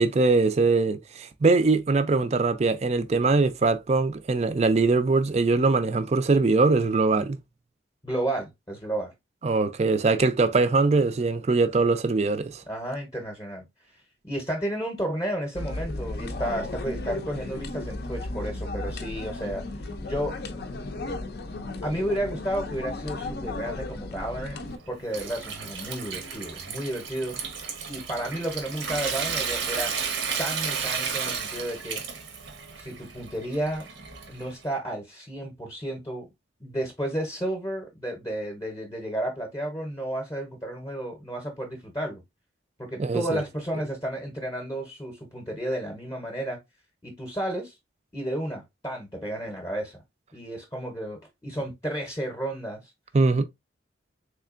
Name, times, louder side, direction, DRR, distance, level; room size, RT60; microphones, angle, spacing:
voice 1, 0.0-7.4 9.4-12.6 43.0-43.4 53.1-53.4, right 3 dB, 35° right, 0.4 m, -22 dB
voice 2, 8.0-9.1 12.7-13.6 14.2-19.6 20.0-20.4 21.8-24.6 24.9-27.4 27.9-29.9 30.4-32.0 32.8-33.8 34.3-36.3 36.6-42.2 42.8-46.6 47.0-47.7 48.1-50.0 50.3-52.8, right 1 dB, 20° left, 0.8 m, -32 dB
sound 1, 15.5-24.8, left 2 dB, 55° left, 0.5 m, -34 dB
Water tap faucet / Sink (filling or washing) / Trickle dribble, 24.7-34.6, right 6 dB, 80° right, 0.9 m, -33 dB
3.6 x 3.3 x 2.4 m
head